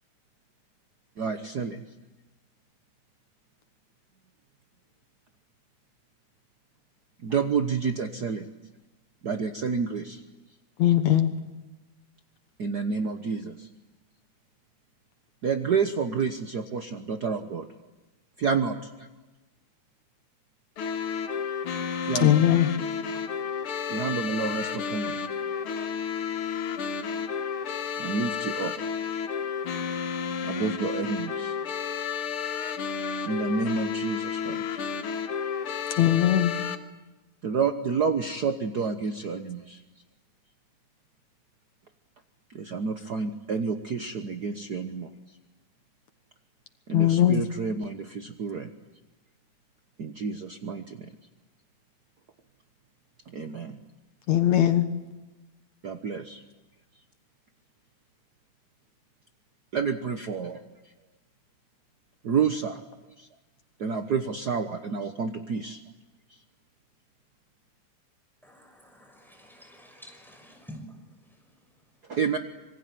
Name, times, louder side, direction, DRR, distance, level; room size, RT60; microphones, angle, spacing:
voice 1, 1.2-1.8 7.2-8.5 9.2-10.2 12.6-13.7 15.4-17.7 18.4-19.1 22.0-22.4 23.9-25.2 27.9-28.7 30.4-31.6 33.2-34.8 37.4-39.8 42.5-45.1 46.9-48.7 50.0-51.1 53.3-53.8 55.8-56.4 59.7-60.6 62.2-62.8 63.2-63.3 63.8-65.8 72.1-72.4, right 5 dB, 65° right, 7 dB, 1.0 m, -29 dB
voice 2, 10.8-11.3 22.2-22.7 36.0-36.5 46.9-47.4 54.3-54.9, left 12 dB, 70° left, 8 dB, 2.5 m, -20 dB
sound 1, 20.8-36.8, left 6 dB, 55° left, 2.0 m, -31 dB
voice 3, 68.4-70.9, equal, ahead, 3 dB, 6.2 m, -48 dB
26.5 x 24.0 x 9.4 m, 1.1 s
omnidirectional pair, 3.5 m